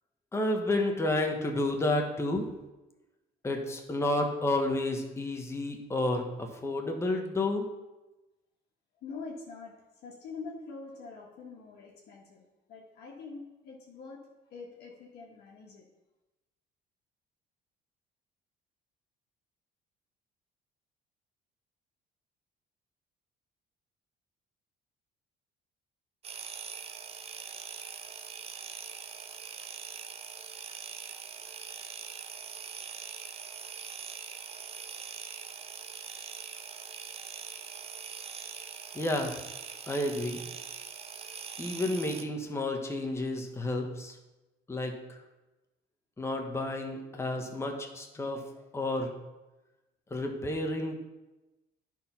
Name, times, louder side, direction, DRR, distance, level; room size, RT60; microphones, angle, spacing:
voice 1, 0.3-2.5 3.4-7.6 38.9-39.3 39.9-40.4 41.6-44.1 44.7-44.9 46.2-48.4 48.7-49.1 50.1-51.0, left 2 dB, 15° left, 2 dB, 1.2 m, -30 dB
voice 2, 9.0-9.7 10.0-15.8, left 4 dB, 70° left, -3 dB, 1.6 m, -45 dB
sound 1, 26.2-42.2, right 6 dB, 35° right, 0.7 m, -43 dB
10.0 x 4.5 x 5.6 m, 1.0 s
cardioid pair, 110°, 17 cm